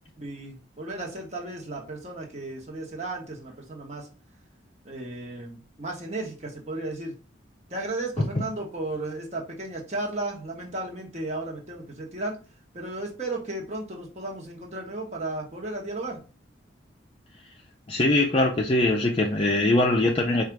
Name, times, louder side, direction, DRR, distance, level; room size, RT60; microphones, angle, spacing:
voice 1, 0.2-4.1 4.8-7.1 7.7-12.4 12.7-16.2, right 2 dB, 35° right, 0 dB, 1.1 m, -34 dB
voice 2, 17.9-20.4, left 2 dB, 30° left, 0 dB, 0.5 m, -22 dB
4.8 x 2.4 x 4.5 m, 0.35 s
head